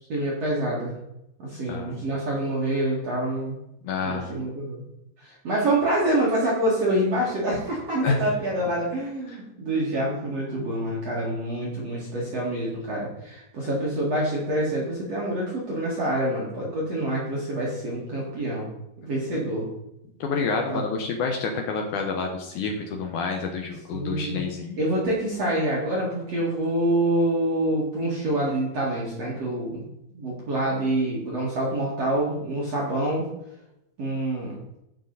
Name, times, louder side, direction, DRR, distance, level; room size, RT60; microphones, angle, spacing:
voice 1, 0.1-0.9 1.4-3.6 4.0-4.8 5.2-18.7 19.0-19.7 20.7-20.8 23.9-24.4 24.8-29.8 30.1-33.3 34.0-34.6, right 1 dB, 45° right, -5 dB, 2.5 m, -26 dB
voice 2, 1.7-2.0 3.8-4.3 8.0-8.2 20.2-24.8, left 4 dB, 85° left, 2 dB, 1.7 m, -28 dB
15.5 x 6.6 x 4.1 m, 0.86 s
omnidirectional pair, 5.2 m